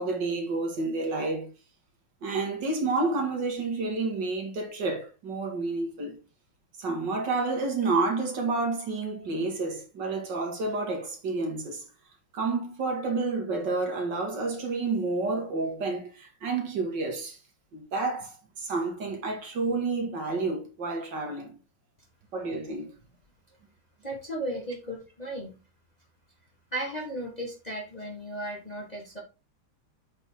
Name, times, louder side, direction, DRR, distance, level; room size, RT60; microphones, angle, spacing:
voice 1, 0.0-1.5 2.2-6.2 6.8-11.9 12.3-17.4 17.7-21.5 22.3-22.9, right 3 dB, 55° right, 2.5 m, -30 dB
voice 2, 24.0-25.5 26.7-29.2, right 1 dB, 20° left, 1.6 m, -35 dB
8.0 x 5.5 x 3.7 m
omnidirectional pair, 2.3 m